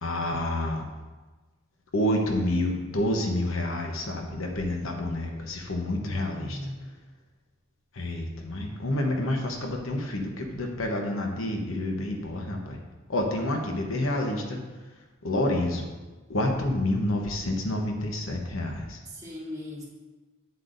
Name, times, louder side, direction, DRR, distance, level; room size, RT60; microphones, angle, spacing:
voice 1, 0.0-0.8 1.9-6.7 7.9-12.8 13.1-14.6 15.2-15.9 16.3-19.0, left 1 dB, 75° left, 2 dB, 1.0 m, -28 dB
voice 2, 5.8-6.9 19.1-19.8, left 1 dB, 20° right, -9 dB, 2.6 m, -39 dB
8.6 x 7.8 x 2.6 m, 1.3 s
head